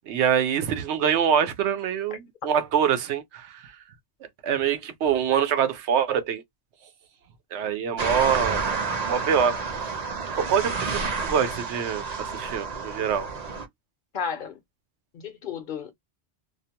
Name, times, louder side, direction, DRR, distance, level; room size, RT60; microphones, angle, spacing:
voice 1, 0.1-3.7 4.4-6.4 7.5-8.7 9.0-9.6 9.9-10.0 10.4-13.3, right 8 dB, 85° right, 0.9 m, -25 dB
sound 1, 8.0-13.7, right 4 dB, 45° right, 0.6 m, -30 dB
voice 2, 14.1-14.6 15.1-15.9, left 7 dB, 55° left, 0.7 m, -33 dB
2.4 x 2.1 x 2.8 m
omnidirectional pair, 1.1 m